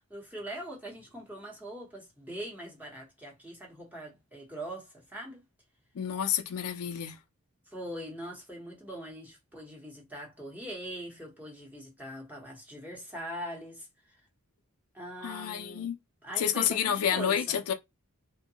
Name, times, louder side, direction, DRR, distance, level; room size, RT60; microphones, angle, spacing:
voice 1, 0.1-5.4 7.7-14.2 14.9-15.9 16.2-17.6, right 1 dB, 10° right, 0.9 m, -42 dB
voice 2, 5.9-7.2 15.2-16.0 16.4-17.7, left 9 dB, 80° left, 0.4 m, -29 dB
2.7 x 2.2 x 2.7 m
head